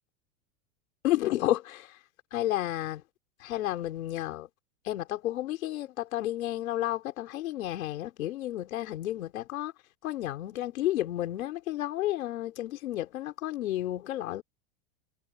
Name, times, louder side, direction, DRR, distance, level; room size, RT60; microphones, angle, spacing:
voice 1, 1.0-1.9 2.3-3.0 3.4-4.5 4.8-9.7 10.0-14.4, left 14 dB, 90° left, 4.1 m, -31 dB
supercardioid pair, 145°, 40 cm